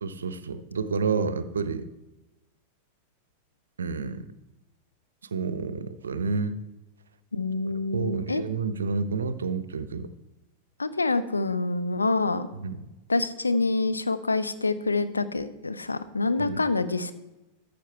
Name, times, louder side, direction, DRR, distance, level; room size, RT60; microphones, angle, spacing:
voice 1, 0.0-1.9 3.8-4.3 5.3-6.6 7.9-10.1 12.5-12.9 16.4-16.6, right 4 dB, 70° right, 14 dB, 0.6 m, -29 dB
voice 2, 7.3-8.4 10.8-12.5 13.1-17.1, left 3 dB, 80° left, 11 dB, 0.6 m, -26 dB
14.0 x 5.1 x 4.5 m, 1.0 s
figure-of-eight pair, 90°, 0 cm